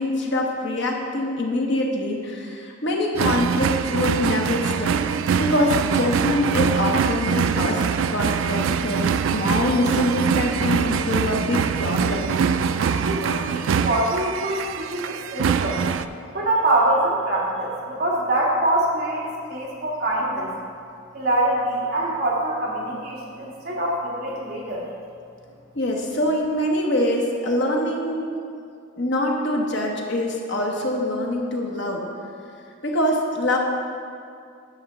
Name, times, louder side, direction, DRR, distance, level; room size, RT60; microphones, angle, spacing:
voice 1, 0.0-7.8 8.1-12.3 25.7-28.3 29.0-32.0 32.8-33.6, left 1 dB, 55° left, 0 dB, 1.1 m, -24 dB
sound 1, 3.1-16.1, right 6 dB, 70° right, 0.3 m, -23 dB
voice 2, 12.8-15.8 16.3-20.5 21.1-24.9, right 1 dB, 50° right, -4 dB, 1.7 m, -24 dB
10.0 x 3.6 x 6.8 m, 2.4 s
head